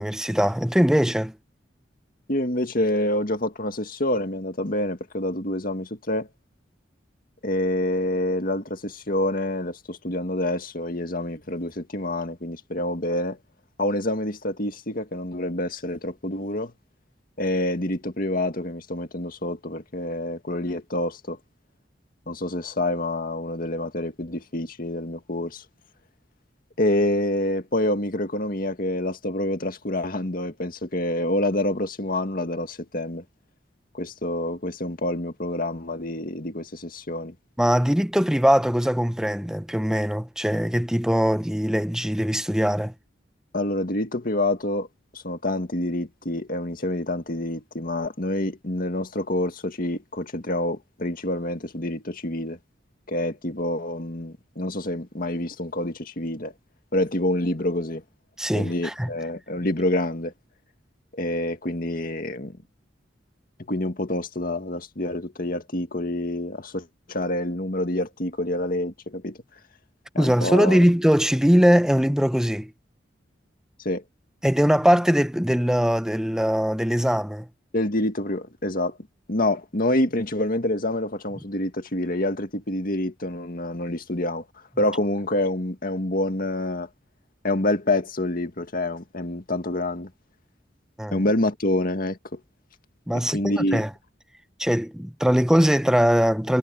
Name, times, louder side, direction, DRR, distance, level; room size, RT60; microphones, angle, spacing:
voice 1, 0.0-1.3 37.6-42.9 58.4-59.1 70.2-72.7 74.4-77.5 91.0-91.3 93.1-93.9 94.6-96.6, equal, 5° right, 0.7 m, -21 dB
voice 2, 2.3-6.3 7.4-13.4 13.8-16.7 17.4-21.4 22.3-25.6 26.8-33.2 33.9-37.3 43.5-44.9 45.1-52.6 53.1-56.5 56.9-58.0 58.5-60.3 61.1-62.5 63.7-69.4 70.1-70.8 73.9-74.0 77.7-79.0 79.3-84.4 84.8-86.9 87.4-90.1 91.1-92.4 93.1-93.8, left 1 dB, 50° left, 2.1 m, -27 dB
head